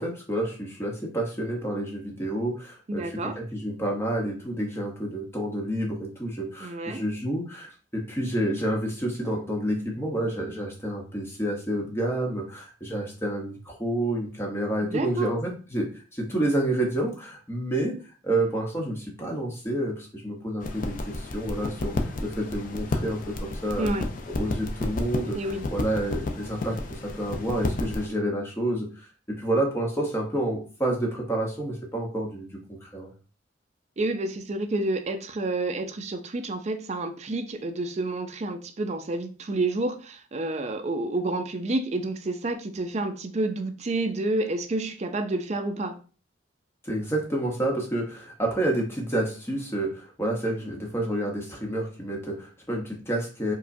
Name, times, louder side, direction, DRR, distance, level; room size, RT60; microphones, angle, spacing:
voice 1, 0.0-17.9 18.2-23.9 24.4-25.4 25.7-33.1 46.8-53.5, right 1 dB, 15° left, 0.9 m, -29 dB
voice 2, 2.9-3.4 6.6-7.0 14.8-15.3 23.8-24.1 25.3-25.7 34.0-46.0, right 2 dB, 35° right, 0.4 m, -29 dB
sound 1, 20.6-28.1, left 2 dB, 45° left, 0.4 m, -32 dB
4.7 x 2.2 x 2.6 m
head